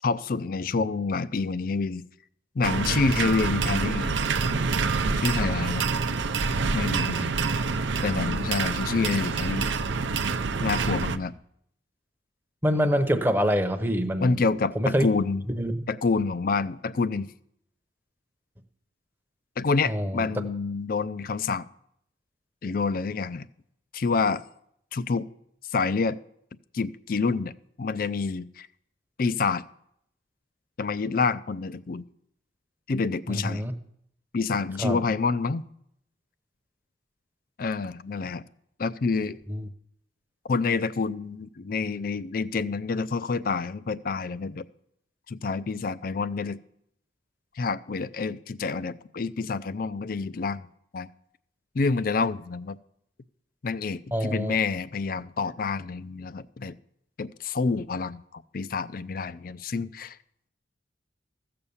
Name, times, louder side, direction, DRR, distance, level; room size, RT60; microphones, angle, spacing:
voice 1, 0.0-2.0 2.6-4.2 5.2-5.8 6.7-7.3 8.0-9.7 10.6-11.4 14.2-15.4 15.9-17.3 19.6-21.6 22.6-23.5 23.9-24.4 24.9-25.3 25.7-26.2 26.7-27.5 27.8-28.7 29.2-29.6 30.8-32.0 32.9-33.6 34.3-35.7 37.6-38.5 38.8-39.4 40.5-44.6 45.3-46.6 47.6-50.7 50.9-51.1 51.7-52.8 53.6-56.7 57.2-60.2, left 4 dB, 50° left, 16 dB, 0.4 m, -27 dB
sound 1, 2.6-11.2, right 4 dB, 85° right, 0.6 m, -27 dB
voice 2, 12.6-14.4 14.7-15.1 15.5-15.7 19.9-20.3 33.3-33.7 34.8-35.0 39.5-39.7 54.1-54.6, equal, 10° right, 6 dB, 0.8 m, -25 dB
15.0 x 6.8 x 7.1 m, 0.73 s
head